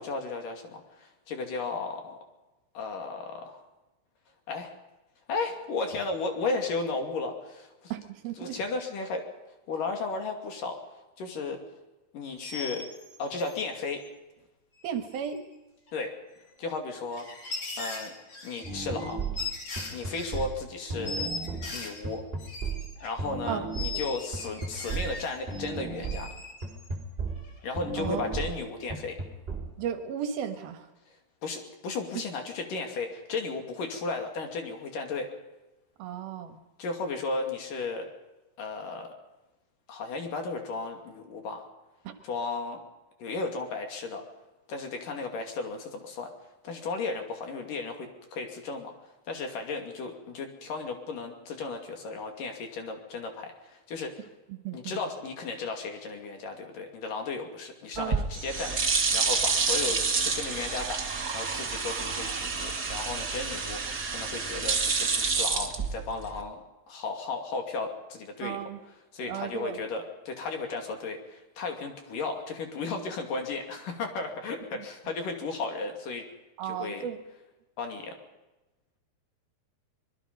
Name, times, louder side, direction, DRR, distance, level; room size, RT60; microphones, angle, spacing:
voice 1, 0.0-2.2 2.7-3.6 4.5-4.7 5.3-7.9 8.4-9.3 9.7-11.6 12.1-12.9 13.2-14.0 15.9-16.1 16.6-17.3 17.8-18.1 18.4-19.2 19.9-21.3 21.7-22.3 23.0-26.3 27.6-29.2 31.4-35.3 36.8-38.1 38.6-39.1 39.9-41.7 42.2-42.8 43.2-44.2 44.7-46.3 46.6-48.9 49.3-54.2 54.7-58.7 59.1-61.0 61.3-68.6 69.1-76.3 76.6-77.1 77.8-78.2, left 3 dB, 55° left, 4 dB, 3.9 m, -34 dB
voice 2, 7.9-8.6 14.8-15.4 23.5-23.7 28.0-28.2 29.8-30.9 36.0-36.6 42.0-42.1 54.5-55.0 58.0-58.3 68.4-68.8 69.3-69.8 74.7-74.9 76.6-77.2, right 9 dB, 70° right, 8 dB, 3.1 m, -35 dB
sound 1, 12.4-13.6 14.8-14.9 15.1-15.6 15.9-16.0 16.9-20.5 21.0-23.1 23.7-25.6 26.0-27.0 27.4-27.7, left 3 dB, 35° left, 4.5 m, -39 dB
sound 2, 18.6-29.7, right 4 dB, 15° right, 3.4 m, -35 dB
sound 3, 57.9-66.4, right 5 dB, 40° right, 1.5 m, -29 dB
24.5 x 22.0 x 5.4 m, 1.0 s
omnidirectional pair, 4.7 m